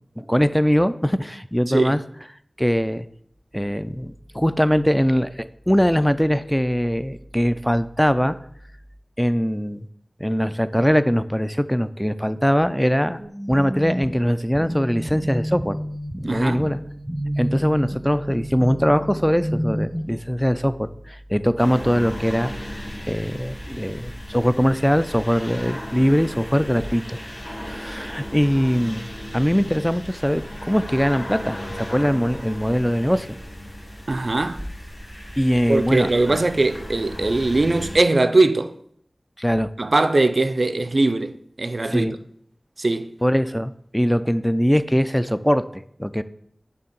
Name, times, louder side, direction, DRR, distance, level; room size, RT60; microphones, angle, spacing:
voice 1, 0.2-2.0 2.6-3.1 3.5-8.4 9.2-9.9 10.2-13.2 13.5-15.8 16.2-16.8 17.4-27.2 27.6-29.1 29.3-33.4 35.4-36.4 39.4-39.7 41.9-42.1 43.2-46.2, equal, 5° left, 0.3 m, -21 dB
voice 2, 1.7-2.0 16.2-16.6 34.1-34.6 35.7-38.7 39.8-42.2 42.8-43.1, right 2 dB, 70° right, 0.4 m, -20 dB
sound 1, 13.2-20.0, equal, 15° right, 0.8 m, -30 dB
sound 2, 21.6-38.0, equal, 45° left, 1.4 m, -36 dB
6.6 x 2.8 x 5.3 m
wide cardioid pair, 40°, 0 cm